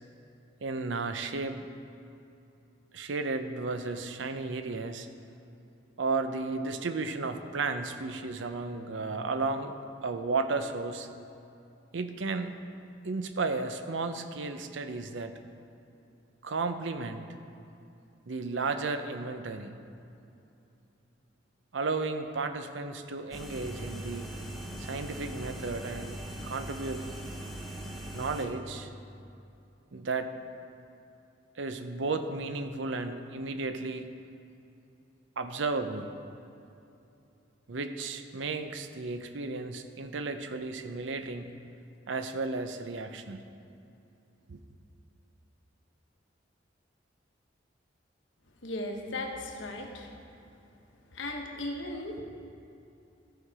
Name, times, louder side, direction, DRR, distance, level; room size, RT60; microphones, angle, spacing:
voice 1, 0.6-1.6 2.9-5.1 6.0-9.7 10.0-11.1 11.9-12.6 13.0-15.3 16.4-17.3 18.3-19.8 21.7-24.3 24.8-27.1 28.1-28.9 29.9-30.3 31.6-34.1 35.4-36.1 37.7-41.5 42.1-43.4 44.5-44.6, right 3 dB, 75° right, 8 dB, 0.6 m, -33 dB
sound 1, 23.3-28.5, right 1 dB, ahead, 0.9 m, -40 dB
voice 2, 48.6-50.1 51.1-52.2, left 1 dB, 85° left, 2 dB, 1.2 m, -36 dB
14.0 x 5.7 x 4.8 m, 2.7 s
head